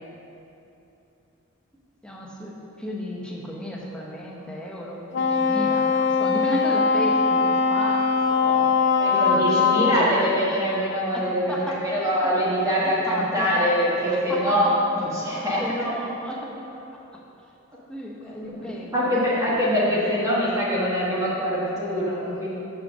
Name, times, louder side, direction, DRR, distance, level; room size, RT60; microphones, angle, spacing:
voice 1, 2.0-8.8 9.1-10.2 11.1-11.2 11.5-11.9 12.2-12.3 13.1-13.5 14.1-14.6 15.6-16.6 16.9-17.0 17.9-19.2 19.5-19.6 19.9-20.4 21.0-21.3, equal, 5° left, -3 dB, 0.9 m, -33 dB
Wind instrument woodwind instrument, 5.1-10.2, left 5 dB, 55° left, 0.6 m, -21 dB
voice 2, 9.0-15.6 18.9-22.6, equal, 15° right, -7 dB, 1.2 m, -23 dB
6.5 x 5.7 x 6.2 m, 2.9 s
head